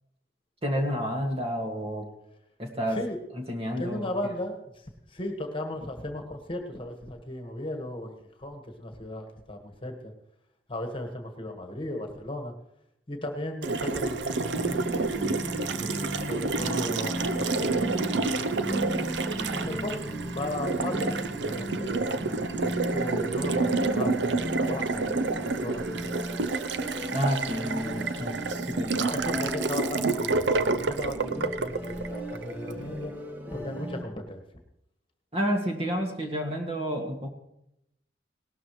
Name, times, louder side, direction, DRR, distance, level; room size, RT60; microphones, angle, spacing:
voice 1, 0.6-2.1 2.6-3.0 3.5-4.1 27.1-28.4 28.7-29.1 35.3-37.3, equal, 35° right, 2 dB, 1.9 m, -30 dB
voice 2, 3.8-10.1 10.7-12.5 13.1-14.9 15.5-18.9 19.5-22.1 22.9-26.7 26.9-27.1 28.4-28.6 28.9-33.1 33.5-34.4, left 1 dB, 30° left, 4 dB, 1.5 m, -36 dB
Water tap faucet, 13.6-32.8, right 3 dB, 75° right, 0.7 m, -29 dB
sound 1, 14.5-34.0, equal, 10° right, 1.3 m, -36 dB
18.0 x 12.5 x 3.1 m, 0.81 s
head